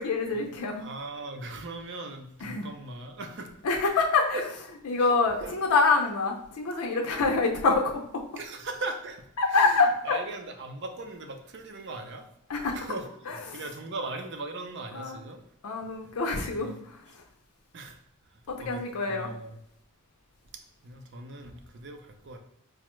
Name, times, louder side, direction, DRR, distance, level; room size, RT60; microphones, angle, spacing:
voice 1, 0.0-0.9 2.4-2.7 3.6-4.4 4.9-8.0 9.4-10.2 12.5-12.8 13.3-13.6 14.9-15.2 15.6-17.0 18.5-19.3, left 4 dB, 85° left, 2 dB, 0.5 m, -26 dB
voice 2, 0.8-3.6 4.3-4.4 5.0-5.6 7.1-7.2 8.4-12.3 12.7-15.4 16.5-16.8 17.7-18.0 18.3-19.6 20.8-22.4, right 2 dB, 55° right, 5 dB, 0.5 m, -39 dB
4.7 x 2.1 x 3.0 m, 0.75 s
head